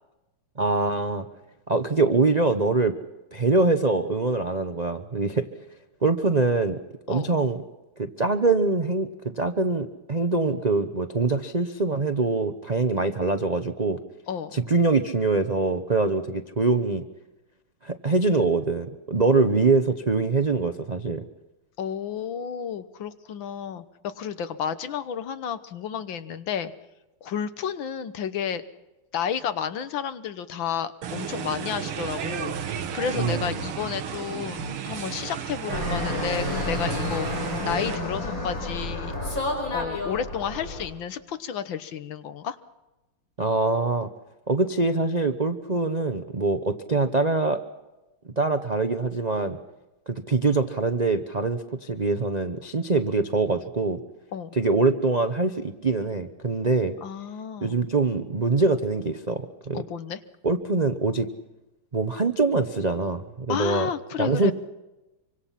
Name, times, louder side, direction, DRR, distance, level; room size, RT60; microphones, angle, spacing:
voice 1, 0.6-1.3 1.7-2.9 3.3-5.5 6.0-6.8 7.1-7.6 8.0-14.0 14.5-17.1 17.8-21.2 33.1-33.5 43.4-44.1 44.5-47.6 48.4-49.6 50.1-54.0 54.5-57.0 57.6-59.8 60.4-61.3 61.9-63.9 64.2-64.5, right 3 dB, 40° right, 7 dB, 0.5 m, -24 dB
voice 2, 21.8-26.7 27.2-28.6 29.1-39.1 39.7-42.6 54.3-54.6 57.0-57.8 59.7-60.2 63.5-64.5, left 8 dB, 65° left, 12 dB, 1.7 m, -31 dB
sound 1, 31.0-38.0, right 7 dB, 80° right, 2.1 m, -33 dB
Fixed-wing aircraft airplane, 35.7-40.8, left 1 dB, 40° left, 5.6 m, -30 dB
26.0 x 25.0 x 5.9 m, 1.0 s
omnidirectional pair, 2.4 m